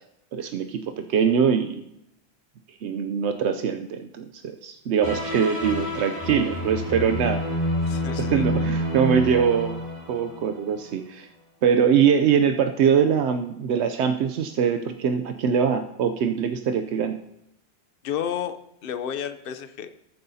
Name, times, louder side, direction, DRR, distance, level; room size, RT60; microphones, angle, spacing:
voice 1, 0.3-0.8 1.1-1.8 2.8-7.5 8.2-9.8 10.1-11.3 11.6-17.2, right 7 dB, 85° right, 6 dB, 0.9 m, -23 dB
sound 1, 5.0-10.8, left 1 dB, 40° left, 2.6 m, -28 dB
voice 2, 7.8-8.7 18.0-18.6 18.8-19.9, left 9 dB, 60° left, 10 dB, 0.9 m, -31 dB
20.0 x 9.4 x 2.7 m, 0.82 s
omnidirectional pair, 1.1 m